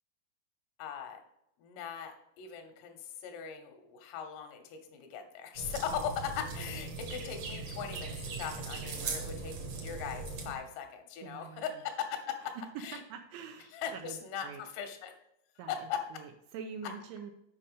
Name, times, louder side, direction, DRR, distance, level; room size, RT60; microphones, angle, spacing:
voice 1, 0.8-1.2 1.6-13.0 13.7-15.1 15.7-16.0, left 8 dB, 85° left, 6 dB, 3.7 m, -39 dB
sound 1, 5.6-10.5, right 4 dB, 65° right, 2.1 m, -39 dB
voice 2, 11.2-11.7 12.6-14.6 15.6-15.7 16.1-17.3, right 6 dB, 85° right, 5 dB, 2.8 m, -45 dB
8.5 x 5.5 x 5.1 m, 0.80 s
omnidirectional pair, 5.8 m